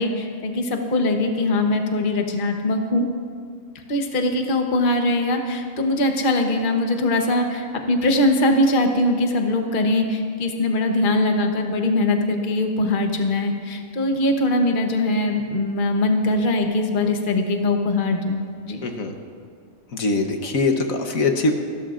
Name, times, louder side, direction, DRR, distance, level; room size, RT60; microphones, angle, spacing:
voice 1, 0.0-3.1 3.9-18.4 18.7-18.8, left 2 dB, 40° left, 4 dB, 1.1 m, -21 dB
voice 2, 18.8-19.1 19.9-21.5, left 3 dB, 75° left, 4 dB, 1.5 m, -22 dB
29.5 x 13.0 x 2.5 m, 2.1 s
omnidirectional pair, 1.4 m